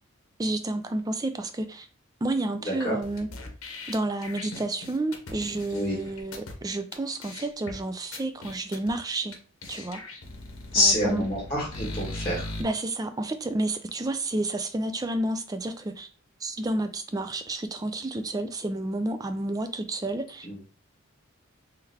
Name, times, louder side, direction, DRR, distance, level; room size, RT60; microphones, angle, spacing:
voice 1, 0.4-1.9 2.2-3.3 3.9-9.4 9.7-10.0 10.8-11.2 12.6-16.1 16.4-20.5, right 2 dB, 15° right, 9 dB, 0.3 m, -30 dB
voice 2, 2.7-3.0 5.7-5.9 10.7-12.5 20.4-20.6, left 1 dB, 20° left, -4 dB, 1.2 m, -26 dB
sound 1, 3.0-6.5 6.9-7.0 7.2-7.7 8.1-8.9 9.3-9.4 9.6-12.6, left 2 dB, 75° left, 0.8 m, -39 dB
3.8 x 3.4 x 2.8 m, 0.40 s
head